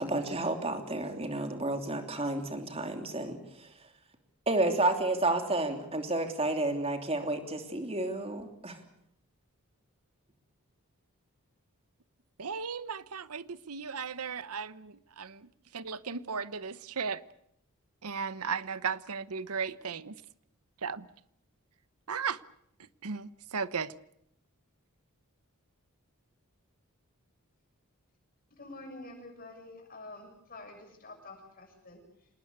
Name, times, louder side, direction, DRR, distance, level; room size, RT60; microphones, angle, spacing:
voice 1, 0.0-3.7 4.5-8.8, right 2 dB, 25° right, 6 dB, 3.0 m, -31 dB
voice 2, 12.4-17.2 18.0-20.2 20.8-21.1 22.1-22.4 23.0-23.9, right 6 dB, 85° right, 17 dB, 1.0 m, -36 dB
voice 3, 28.5-32.3, left 2 dB, 40° left, 3 dB, 7.0 m, -48 dB
26.5 x 19.5 x 8.2 m, 0.75 s
head